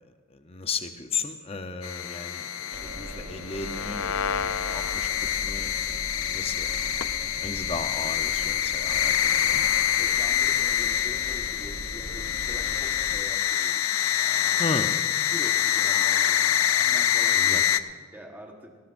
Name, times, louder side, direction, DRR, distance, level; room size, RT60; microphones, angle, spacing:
voice 1, 0.3-6.9 7.4-9.6 14.6-15.0 17.3-17.6, left 4 dB, 25° left, 8 dB, 0.7 m, -35 dB
sound 1, 1.8-17.8, left 10 dB, 75° left, 0.5 m, -26 dB
sound 2, 2.7-13.2, right 1 dB, 60° right, 0.9 m, -41 dB
voice 2, 10.0-13.9 14.2-14.6 14.9-18.8, equal, 10° right, 0 dB, 1.3 m, -45 dB
18.5 x 18.0 x 2.6 m, 1.5 s
head